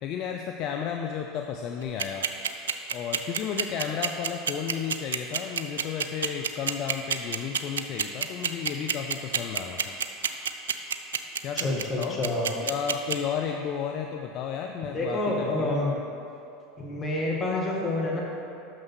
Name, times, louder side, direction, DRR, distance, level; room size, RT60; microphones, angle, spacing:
voice 1, 0.0-2.3 2.9-10.0 11.4-12.2 12.6-15.9, left 7 dB, 50° left, 3 dB, 0.5 m, -33 dB
sound 1, 1.8-13.2, right 8 dB, 80° right, 0.4 m, -27 dB
voice 2, 11.5-12.5 14.9-16.0 16.8-18.2, left 2 dB, 25° left, -4 dB, 2.0 m, -28 dB
6.2 x 5.9 x 6.3 m, 2.7 s
hypercardioid pair, 85°, 0 cm